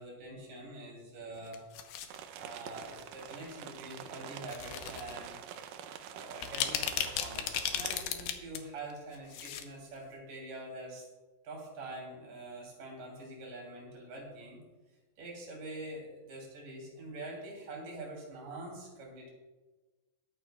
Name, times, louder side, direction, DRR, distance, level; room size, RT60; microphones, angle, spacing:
voice 1, 0.0-1.6 2.3-5.4 6.1-11.1 11.4-14.6 15.2-19.3, right 2 dB, 60° right, -1 dB, 4.4 m, -45 dB
sound 1, 1.4-2.2 3.0-3.2 4.4-5.1 5.5-5.6 6.2-8.6 8.9-9.6 9.9-10.0, left 10 dB, 80° left, 2.6 m, -35 dB
sound 2, 2.1-8.0, right 9 dB, 85° right, 1.9 m, -46 dB
20.5 x 9.4 x 2.3 m, 1.2 s
omnidirectional pair, 4.4 m